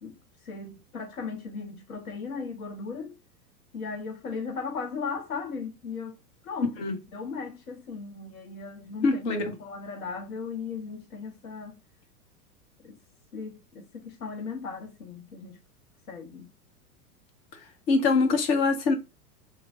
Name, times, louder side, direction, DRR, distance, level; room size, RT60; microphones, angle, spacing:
voice 1, 0.0-3.1 3.7-6.2 6.4-11.8 12.8-13.0 13.3-15.6 16.1-16.5, left 5 dB, 60° left, 0.9 m, -37 dB
voice 2, 9.0-9.5 17.9-18.9, left 3 dB, 40° left, 1.0 m, -23 dB
3.2 x 2.2 x 3.6 m
figure-of-eight pair, 100°, 47 cm